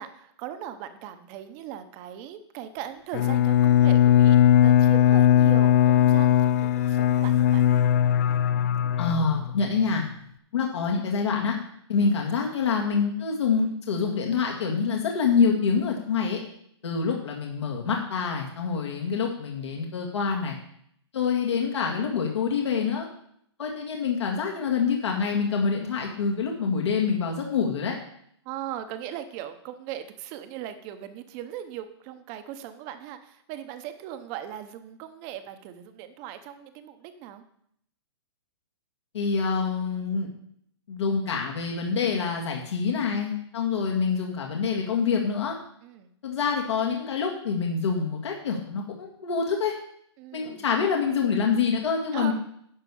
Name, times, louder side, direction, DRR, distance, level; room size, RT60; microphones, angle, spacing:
voice 1, 0.0-4.4 4.6-7.7 28.4-37.4 45.8-46.1 50.2-50.7 52.1-52.3, right 11 dB, 25° right, 10 dB, 0.7 m, -39 dB
Bowed string instrument, 3.1-9.7, left 10 dB, 35° left, 0.4 m, -19 dB
voice 2, 9.0-10.0 10.5-11.6 11.9-16.4 16.8-20.6 21.1-23.1 23.6-28.0 39.1-40.3 40.9-45.6 46.2-49.7 50.3-52.3, left 5 dB, 75° left, 0 dB, 2.0 m, -26 dB
11.0 x 4.8 x 7.0 m, 0.70 s
hypercardioid pair, 165°, 14 cm